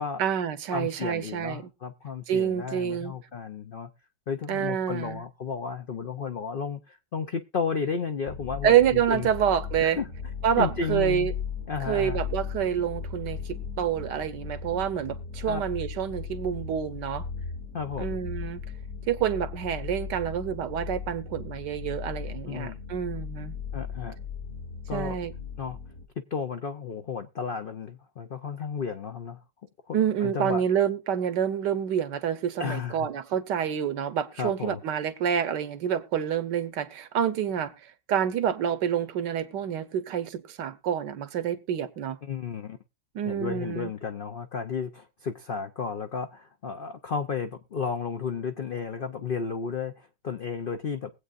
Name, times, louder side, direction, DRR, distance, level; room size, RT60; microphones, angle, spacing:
voice 1, 0.2-1.7 2.3-3.2 4.5-5.2 8.6-10.0 10.4-11.3 11.9-17.3 18.0-18.6 19.1-23.6 24.9-25.3 29.9-37.7 38.1-42.2 43.1-43.9, right 9 dB, 80° right, 1.5 m, -27 dB
voice 2, 0.7-3.9 4.3-9.3 9.8-10.1 10.6-11.3 11.7-12.2 15.4-15.6 17.7-18.2 22.5-22.8 23.7-24.2 24.9-25.2 25.6-25.8 26.3-29.4 29.9-30.6 32.6-33.1 34.4-34.8 42.2-42.8 43.2-51.1, left 6 dB, 90° left, 0.4 m, -33 dB
sound 1, 8.3-26.1, left 6 dB, 50° left, 1.5 m, -37 dB
21.5 x 8.3 x 2.5 m
omnidirectional pair, 1.9 m